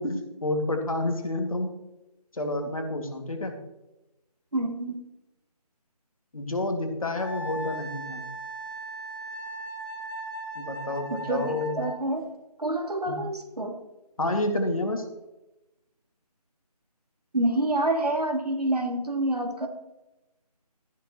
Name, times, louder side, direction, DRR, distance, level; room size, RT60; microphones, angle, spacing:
voice 1, 0.0-1.7 2.3-3.6 6.3-8.4 10.6-11.8 13.1-13.2 14.2-15.0, left 1 dB, 60° left, 4 dB, 2.3 m, -29 dB
voice 2, 4.5-5.0 11.1-12.2 12.6-13.7 17.3-19.7, right 1 dB, 75° right, 4 dB, 2.3 m, -27 dB
Wind instrument woodwind instrument, 7.2-12.0, right 2 dB, 35° left, 2.7 m, -37 dB
14.0 x 11.0 x 3.1 m, 0.99 s
figure-of-eight pair, 160°, 20 cm